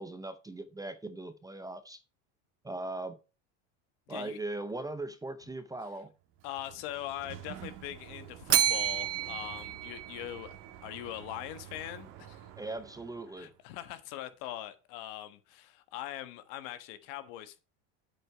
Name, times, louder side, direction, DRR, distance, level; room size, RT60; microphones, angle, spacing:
voice 1, 0.0-2.0 2.6-3.2 4.1-6.1 12.6-13.5, right 2 dB, 10° right, 0.6 m, -39 dB
voice 2, 4.1-4.4 6.4-10.6 10.8-12.4 13.4-17.6, left 13 dB, 65° left, 1.4 m, -42 dB
Sliding door, 6.2-13.6, right 11 dB, 55° right, 1.8 m, -49 dB
Bell, 8.5-10.7, right 11 dB, 40° right, 1.0 m, -30 dB
8.0 x 7.4 x 4.5 m
supercardioid pair, 115°, 38 cm